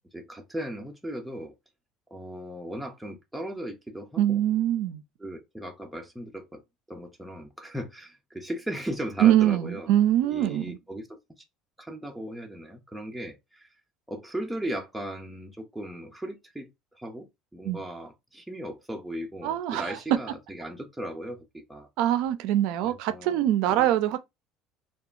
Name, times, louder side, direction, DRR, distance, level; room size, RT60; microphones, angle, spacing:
voice 1, 0.1-1.5 2.1-4.4 5.2-6.6 6.9-9.9 10.2-11.2 11.8-13.7 14.1-17.3 17.5-21.9 22.8-24.0, right 1 dB, 5° right, 0.5 m, -37 dB
voice 2, 4.2-5.0 9.2-10.8 17.7-17.8 19.4-19.9 22.0-24.2, right 12 dB, 75° right, 0.4 m, -23 dB
2.7 x 2.2 x 2.4 m
cardioid pair, 125°, 0 cm